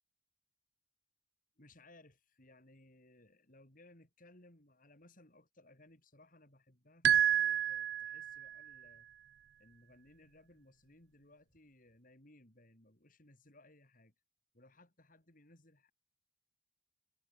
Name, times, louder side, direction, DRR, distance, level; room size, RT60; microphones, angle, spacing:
voice 1, 1.6-9.1 9.6-14.1 14.5-15.9, left 1 dB, 50° left, 5.4 m, -62 dB
sound 1, 7.0-8.6, right 10 dB, 70° right, 0.3 m, -30 dB
head